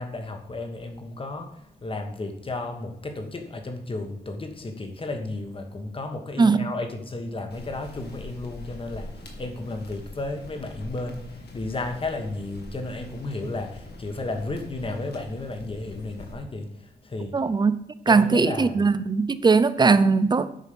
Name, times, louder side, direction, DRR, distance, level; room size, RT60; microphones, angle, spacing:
voice 1, 0.0-17.4 18.1-18.8, left 2 dB, 30° left, 1.4 m, -33 dB
sound 1, 7.5-16.3, left 2 dB, 75° left, 2.3 m, -43 dB
voice 2, 17.3-17.8 18.1-20.5, right 4 dB, 25° right, 0.5 m, -20 dB
9.1 x 5.7 x 6.8 m
wide cardioid pair, 170°, 17 cm